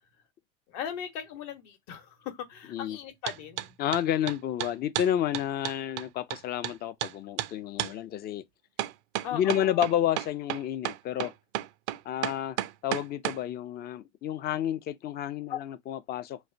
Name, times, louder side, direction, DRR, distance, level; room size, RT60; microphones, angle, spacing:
voice 1, 0.7-3.7 9.2-9.8 15.5-15.6, left 9 dB, 55° left, 1.0 m, -38 dB
sound 1, 3.3-3.7 3.9-6.7 7.0-7.1 7.4-7.5 7.8-7.9 8.8-13.4, right 15 dB, 70° right, 0.5 m, -32 dB
voice 2, 3.8-8.4 9.3-11.3 12.1-12.6 12.8-16.4, left 11 dB, 30° left, 0.4 m, -30 dB
3.1 x 2.1 x 2.5 m
hypercardioid pair, 95°, 36 cm